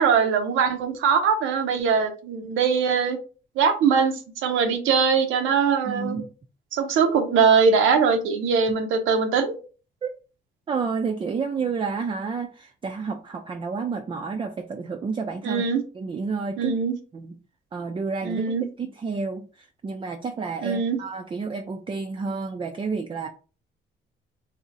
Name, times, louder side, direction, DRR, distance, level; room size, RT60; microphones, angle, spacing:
voice 1, 0.0-3.2 3.6-6.2 6.7-9.6 15.4-15.8 16.6-16.9 18.2-18.6 20.6-21.0, right 6 dB, 85° right, 6 dB, 0.6 m, -21 dB
voice 2, 5.9-6.3 10.0-10.1 10.7-15.6 15.9-16.8 17.1-17.4 17.7-23.3, right 4 dB, 25° right, 4 dB, 0.4 m, -30 dB
2.6 x 2.0 x 3.7 m, 0.36 s
cardioid pair, 90°, 20 cm